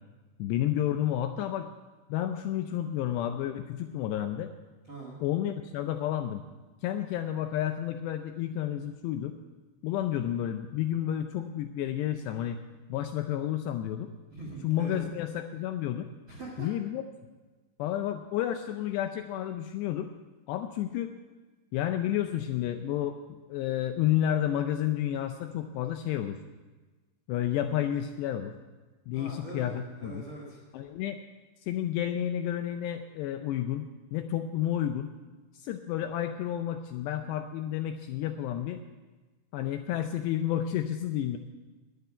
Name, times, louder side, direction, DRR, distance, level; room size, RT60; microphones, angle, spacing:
voice 1, 0.4-1.7 2.1-4.5 5.2-6.4 6.8-9.4 9.8-12.6 12.9-14.1 14.6-16.1 16.6-17.0 17.8-20.1 20.5-21.1 21.7-26.4 27.3-28.6 29.1-30.2 30.7-31.2 31.6-35.1 35.6-38.8 39.5-41.4, left 11 dB, 80° left, 7 dB, 2.5 m, -31 dB
voice 2, 4.9-5.2 14.3-15.0 16.3-16.7 29.1-30.6, right 2 dB, 50° right, -2 dB, 1.5 m, -42 dB
11.0 x 9.3 x 9.8 m, 1.3 s
omnidirectional pair, 5.5 m